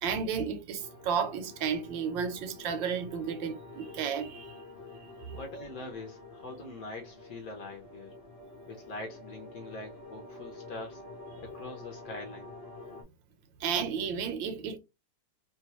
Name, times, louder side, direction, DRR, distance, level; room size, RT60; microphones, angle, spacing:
voice 1, 0.0-4.6 5.0-5.4 13.6-14.8, right 6 dB, 80° right, 1.3 m, -33 dB
sound 1, 0.8-13.0, left 3 dB, 30° left, 0.7 m, -48 dB
voice 2, 5.3-8.1 8.7-11.0 11.4-12.6, left 2 dB, 65° left, 0.9 m, -43 dB
3.1 x 2.2 x 2.8 m
omnidirectional pair, 2.0 m